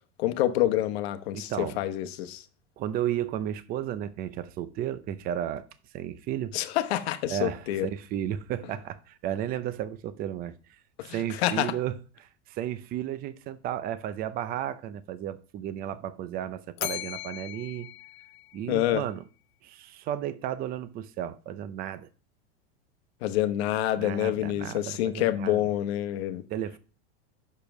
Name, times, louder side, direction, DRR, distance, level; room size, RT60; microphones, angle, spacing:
voice 1, 0.2-2.4 6.5-7.9 11.0-11.7 18.7-19.0 23.2-26.4, left 13 dB, 65° left, 1.0 m, -27 dB
voice 2, 1.3-1.8 2.8-5.7 5.9-6.5 7.3-10.5 11.0-11.9 12.2-17.9 18.5-19.2 19.6-22.1 24.0-25.6 26.5-26.8, right 11 dB, 25° right, 0.6 m, -33 dB
Bell, 16.8-19.1, left 18 dB, 40° left, 0.4 m, -38 dB
6.7 x 5.1 x 6.0 m
supercardioid pair, 145°, 33 cm